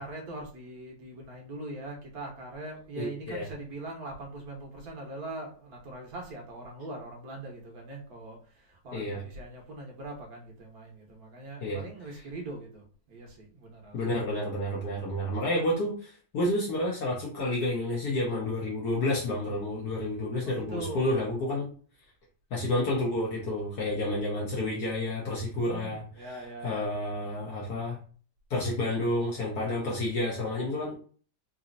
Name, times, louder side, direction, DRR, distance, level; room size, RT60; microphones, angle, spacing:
voice 1, 0.0-14.0 20.4-21.1 25.5-26.8 29.6-29.8, right 2 dB, 60° right, 0 dB, 1.5 m, -42 dB
voice 2, 3.0-3.5 8.9-9.2 11.6-11.8 13.9-21.7 22.5-26.3 26.6-28.0 28.5-30.9, left 1 dB, 65° left, -3 dB, 1.4 m, -30 dB
4.0 x 2.7 x 2.5 m, 0.41 s
omnidirectional pair, 1.9 m